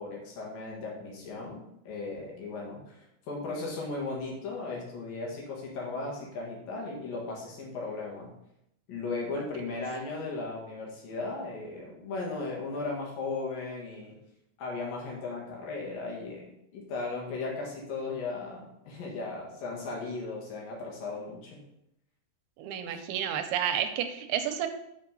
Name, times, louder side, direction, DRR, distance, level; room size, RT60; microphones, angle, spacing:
voice 1, 0.0-8.3 8.9-14.2 14.6-21.6, left 3 dB, 65° left, -2 dB, 3.4 m, -36 dB
voice 2, 22.6-24.7, right 9 dB, 85° right, 7 dB, 2.6 m, -30 dB
6.7 x 5.7 x 5.3 m, 0.79 s
omnidirectional pair, 4.4 m